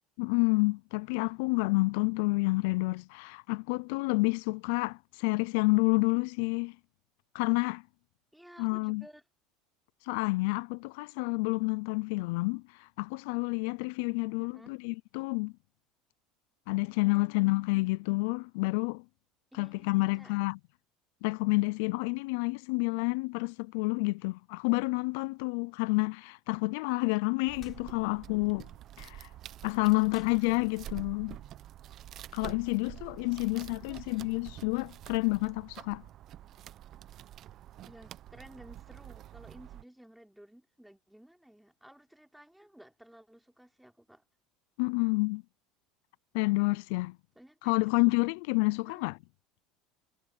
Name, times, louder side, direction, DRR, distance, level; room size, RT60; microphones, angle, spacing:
voice 1, 0.2-6.8 7.3-7.8 8.6-9.0 10.0-15.5 16.7-19.0 19.5-20.6 21.2-28.7 29.0-29.3 29.6-31.4 32.3-36.0 44.8-45.4 46.3-47.2 47.6-49.2, left 27 dB, 75° left, 0.5 m, -29 dB
voice 2, 8.3-9.2 14.4-14.7 17.4-17.9 19.5-20.4 29.9-30.1 33.4-34.0 37.8-44.2 47.4-47.9 48.8-49.1, right 1 dB, 5° right, 3.8 m, -55 dB
sound 1, 27.5-39.8, right 12 dB, 50° right, 1.0 m, -47 dB
sound 2, 27.6-27.8 30.1-31.1, left 10 dB, 45° left, 4.4 m, -56 dB
supercardioid pair, 90°, 0 cm